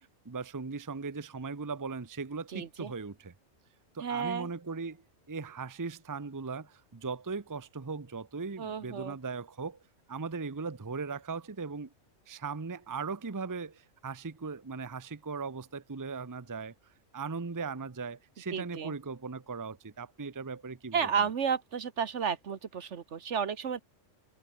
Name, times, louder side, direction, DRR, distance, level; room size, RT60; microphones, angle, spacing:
voice 1, 0.0-3.3 3.9-5.0 5.3-9.8 10.1-11.9 12.3-16.7 17.1-21.1, right 4 dB, 20° right, 0.7 m, -38 dB
voice 2, 2.5-2.9 4.0-4.5 8.6-9.2 18.5-18.9 20.9-23.8, right 7 dB, 65° right, 1.5 m, -32 dB
omnidirectional pair, 1.3 m